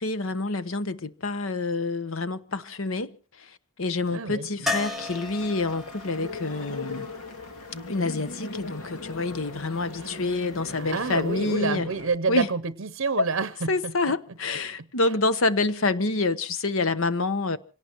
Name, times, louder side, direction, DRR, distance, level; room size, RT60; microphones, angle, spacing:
voice 1, 0.0-7.1 7.9-11.9 12.3-12.5 13.2-13.3 13.7-17.6, left 3 dB, 65° left, 1.0 m, -27 dB
voice 2, 4.1-4.8 10.0-10.2 10.8-13.9, right 4 dB, 65° right, 0.7 m, -29 dB
sound 1, 4.7-8.5 11.2-11.3 11.5-11.6, left 3 dB, ahead, 1.0 m, -35 dB
sound 2, 4.9-12.1, left 2 dB, 90° left, 2.5 m, -39 dB
26.5 x 18.0 x 3.0 m
head